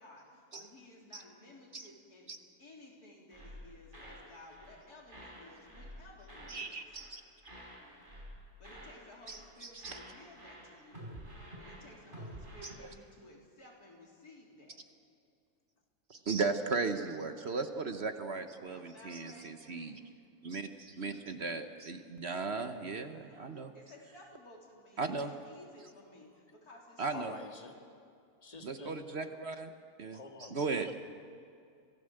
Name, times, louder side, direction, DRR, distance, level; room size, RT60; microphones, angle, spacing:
voice 1, 0.0-2.3 2.6-6.8 8.6-11.1 11.6-14.8 18.6-20.2 23.3-27.4, left 1 dB, 85° left, -2 dB, 4.2 m, -56 dB
sound 1, 3.3-4.3 4.5-4.8 5.1-6.6 6.9-7.2 7.4-9.0 9.2-9.5 9.8-12.7, equal, 35° right, 5.1 m, -50 dB
voice 2, 6.5-7.2 9.3-10.0 16.1-20.0 20.4-23.7 25.0-25.3 27.0-27.3 28.6-29.7 30.0-30.2 30.5-30.9, right 4 dB, 50° right, 8 dB, 1.1 m, -36 dB
voice 3, 27.1-27.7 28.4-29.0 30.1-30.9, left 3 dB, 25° left, 3 dB, 2.0 m, -48 dB
25.5 x 17.0 x 7.8 m, 2.4 s
omnidirectional pair, 1.6 m